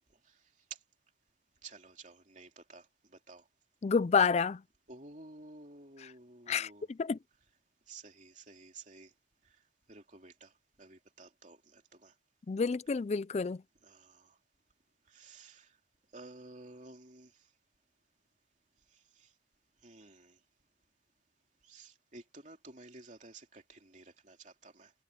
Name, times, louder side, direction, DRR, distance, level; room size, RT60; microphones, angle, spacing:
voice 1, 1.6-3.5 4.9-6.9 7.9-9.1 9.4-9.6 9.9-10.5 10.8-12.1 13.8-14.4 15.1-15.8 16.1-17.4 18.9-19.3 19.8-20.4 21.6-24.9, right 3 dB, 45° right, 3.0 m, -53 dB
voice 2, 3.8-4.6 6.5-7.2 12.5-13.6, left 5 dB, 35° left, 0.4 m, -29 dB
head